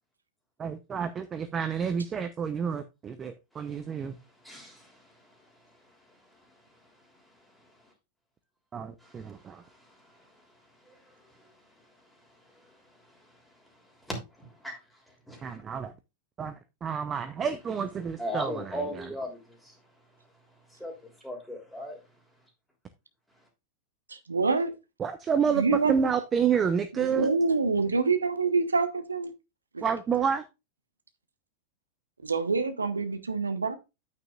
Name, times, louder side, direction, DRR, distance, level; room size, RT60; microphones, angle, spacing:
voice 1, 0.6-4.2 8.7-9.6 15.4-15.9 16.4-16.5 16.8-19.0 25.0-27.3 29.8-30.4, right 7 dB, 25° right, 0.7 m, -29 dB
voice 2, 4.4-7.9 9.0-15.6 18.2-19.8 20.7-22.0, equal, ahead, 3.2 m, -42 dB
voice 3, 24.1-24.7 25.4-25.9 27.0-29.3 29.7-29.8 32.2-33.8, right 4 dB, 75° right, 1.1 m, -26 dB
9.1 x 9.0 x 2.4 m
figure-of-eight pair, 90°, 0 cm